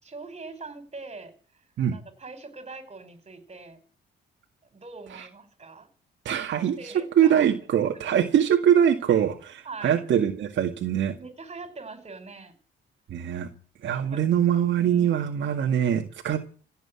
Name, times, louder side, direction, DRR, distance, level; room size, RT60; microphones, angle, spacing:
voice 1, 0.0-3.8 4.6-5.9 6.5-7.5 7.9-8.0 9.6-10.0 11.2-12.5 13.9-14.3 14.8-15.1 15.6-15.9, right 3 dB, 30° right, 9 dB, 5.0 m, -43 dB
voice 2, 6.3-11.1 13.1-13.5 13.8-16.5, right 9 dB, 70° right, 2 dB, 2.0 m, -23 dB
16.5 x 8.1 x 9.7 m, 0.41 s
cardioid pair, 90°, 20 cm